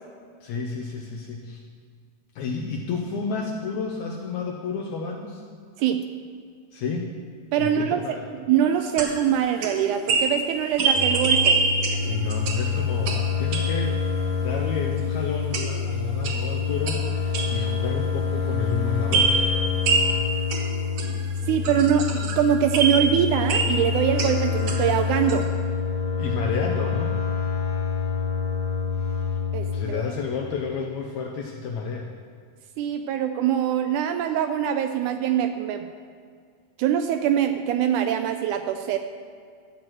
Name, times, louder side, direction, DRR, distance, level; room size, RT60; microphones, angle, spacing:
voice 1, 0.4-1.6 2.4-5.4 6.7-7.1 7.6-8.3 12.0-14.0 14.4-19.6 26.2-27.2 29.7-32.1, left 5 dB, 75° left, 1 dB, 1.8 m, -31 dB
voice 2, 7.5-8.2 8.5-11.6 21.5-25.5 29.5-30.0 32.8-35.9 36.8-39.0, right 9 dB, 80° right, 7 dB, 1.8 m, -23 dB
sound 1, 8.6-14.0 15.5-15.9 16.2-17.9 19.1-25.0 25.3-25.4, right 4 dB, 65° right, 1.6 m, -26 dB
sound 2, 10.9-29.9, left 6 dB, 50° left, 2.2 m, -27 dB
12.5 x 4.7 x 7.6 m, 2.1 s
omnidirectional pair, 3.9 m